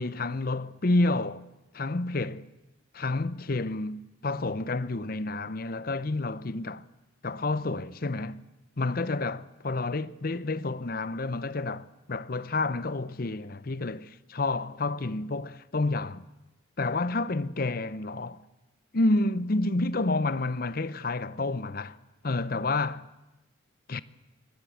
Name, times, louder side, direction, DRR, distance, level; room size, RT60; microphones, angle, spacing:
voice 1, 0.0-1.4 1.7-2.4 2.9-6.9 7.2-8.4 8.8-16.2 16.8-18.4 18.9-22.0 22.2-23.0 23.9-24.0, left 2 dB, 50° left, 0.7 m, -29 dB
24.0 x 19.0 x 8.1 m
head